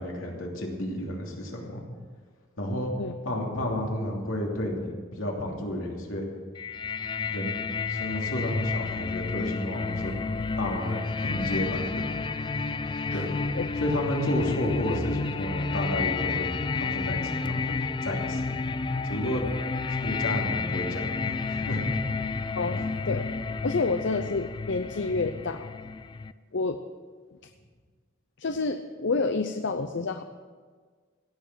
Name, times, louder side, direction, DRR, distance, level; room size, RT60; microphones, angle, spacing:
voice 1, 0.0-1.8 2.6-2.9 3.2-6.2 7.3-7.5 7.9-10.1 10.6-12.1 13.1-13.3 13.8-17.7 18.0-18.5 19.0-19.5 20.0-22.0, left 1 dB, 80° left, -1 dB, 3.0 m, -31 dB
sound 1, 6.6-26.3, left 4 dB, 25° left, 0.4 m, -31 dB
voice 2, 22.5-23.3 23.6-25.7 26.5-26.8 28.4-30.2, left 3 dB, 65° left, 8 dB, 0.6 m, -29 dB
17.0 x 7.1 x 7.6 m, 1.5 s
head